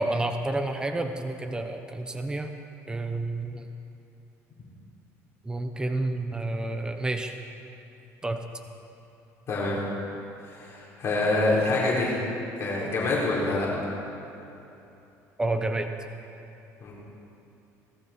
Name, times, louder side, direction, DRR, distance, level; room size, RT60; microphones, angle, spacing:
voice 1, 0.0-2.5 2.9-3.7 5.4-7.3 8.2-8.4 15.4-15.9, right 2 dB, 10° right, 6 dB, 1.0 m, -29 dB
voice 2, 9.5-9.8 10.4-12.2 12.6-13.7 16.8-16.9, left 2 dB, 45° left, -6 dB, 4.4 m, -26 dB
19.5 x 14.0 x 4.5 m, 2.9 s
cardioid pair, 105°, 6 cm